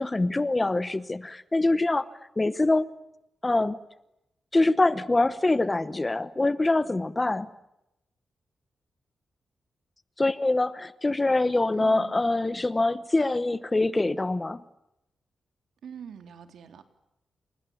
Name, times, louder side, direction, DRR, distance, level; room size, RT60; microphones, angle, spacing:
voice 1, 0.0-2.0 2.4-2.9 3.4-3.8 4.5-7.5 10.2-14.6, left 2 dB, 15° left, 15 dB, 0.9 m, -24 dB
voice 2, 11.7-12.2 15.8-16.8, right 7 dB, 85° right, 8 dB, 3.5 m, -43 dB
29.5 x 28.5 x 7.2 m, 0.87 s
wide cardioid pair, 180°, 0 cm